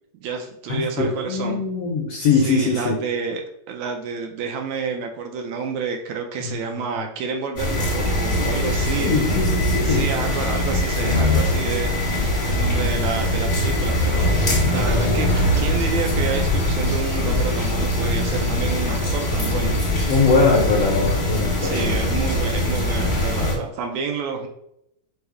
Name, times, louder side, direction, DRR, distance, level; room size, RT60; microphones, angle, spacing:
voice 1, 0.2-1.6 2.3-3.4 3.7-9.3 9.8-12.0 12.5-19.8 21.6-24.5, right 5 dB, 80° right, 3 dB, 1.7 m, -29 dB
voice 2, 1.0-3.0 6.4-6.8 9.0-10.0 20.1-22.0, left 4 dB, 75° left, -2 dB, 1.4 m, -21 dB
sound 1, 7.6-23.5, left 1 dB, 35° left, 0.7 m, -22 dB
5.4 x 2.0 x 4.7 m, 0.79 s
omnidirectional pair, 3.4 m